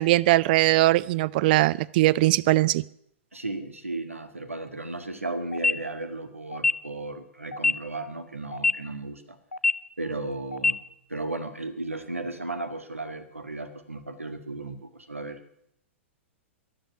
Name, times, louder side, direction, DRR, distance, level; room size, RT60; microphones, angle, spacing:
voice 1, 0.0-2.8, right 17 dB, 45° right, 0.5 m, -20 dB
voice 2, 3.3-9.4 10.0-10.8 11.1-15.4, right 2 dB, 85° right, 1.9 m, -35 dB
sound 1, 5.5-5.7 6.5-6.7 7.5-7.7 8.5-8.7 9.5-9.7 10.5-10.7, left 3 dB, 85° left, 0.7 m, -22 dB
12.0 x 11.5 x 9.4 m
figure-of-eight pair, 110°, 7 cm